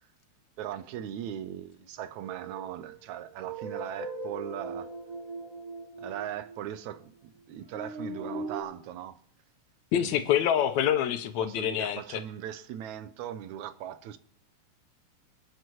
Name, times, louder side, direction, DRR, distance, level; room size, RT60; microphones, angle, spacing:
voice 1, 0.6-4.9 6.0-9.2 10.0-10.2 11.4-14.2, right 11 dB, 80° right, 2.0 m, -39 dB
sound 1, 2.2-6.9 7.7-8.6, right 3 dB, 60° right, 4.7 m, -39 dB
voice 2, 9.9-12.2, left 10 dB, 75° left, 2.0 m, -26 dB
26.5 x 9.2 x 3.1 m
omnidirectional pair, 3.4 m